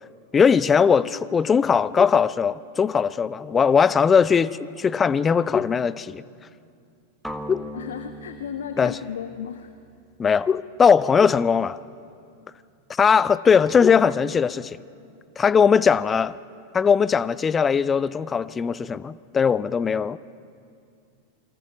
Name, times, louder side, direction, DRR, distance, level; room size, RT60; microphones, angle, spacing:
voice 1, 0.3-6.2 7.5-7.6 8.8-8.9 10.2-11.8 12.9-14.8 15.4-16.3 16.7-20.2, left 6 dB, 20° left, 0.6 m, -19 dB
sound 1, 7.2-11.2, equal, ahead, 1.4 m, -40 dB
voice 2, 7.7-9.7, left 8 dB, 65° left, 0.9 m, -34 dB
29.0 x 24.0 x 6.0 m
figure-of-eight pair, 90°, 0 cm